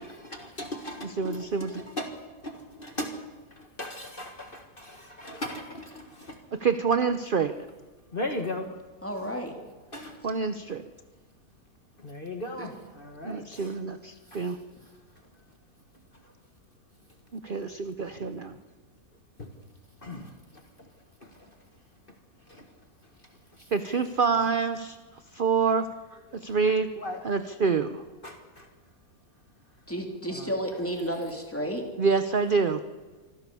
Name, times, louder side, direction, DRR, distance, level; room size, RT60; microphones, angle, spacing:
voice 1, 0.1-2.2 2.4-3.2 3.5-6.4 8.1-8.7 9.9-10.3 12.0-13.7 14.3-14.4 16.2-16.3 19.4-19.5 20.0-20.9 21.2-21.6 22.5-22.7 23.5-23.7 27.0-27.2 28.2-28.7 30.3-30.5, left 1 dB, 35° left, 5 dB, 1.8 m, -38 dB
voice 2, 1.0-1.8 6.5-7.6 10.2-10.9 13.2-14.6 17.3-18.6 23.7-25.0 25.3-25.9 26.3-26.9 27.2-28.0 32.0-32.8, right 5 dB, 45° right, 10 dB, 0.8 m, -26 dB
voice 3, 9.0-9.6 12.6-12.7 29.9-31.9, equal, 10° left, 2 dB, 3.0 m, -32 dB
25.0 x 15.5 x 7.0 m, 1.4 s
omnidirectional pair, 1.6 m